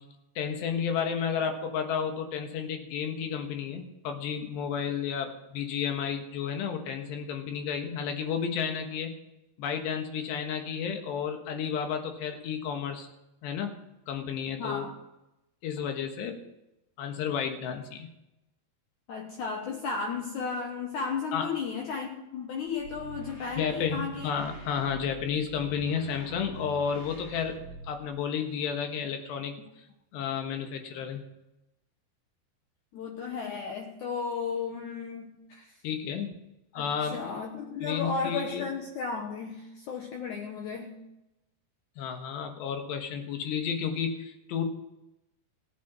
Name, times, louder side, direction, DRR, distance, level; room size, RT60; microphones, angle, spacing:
voice 1, 0.4-9.2 9.6-13.1 13.4-13.7 14.1-14.9 15.6-16.4 17.0-18.1 21.3-21.5 23.6-27.6 27.8-29.5 30.1-31.2 35.8-36.4 36.8-37.2 37.8-38.6 42.0-44.6, left 7 dB, 90° left, 5 dB, 3.6 m, -32 dB
voice 2, 14.6-15.0 19.1-24.3 32.9-35.8 36.7-41.0, left 5 dB, 70° left, 3 dB, 1.9 m, -34 dB
sound 1, 22.7-28.2, right 3 dB, 20° left, 2.3 m, -45 dB
17.0 x 8.5 x 6.1 m, 0.91 s
omnidirectional pair, 4.8 m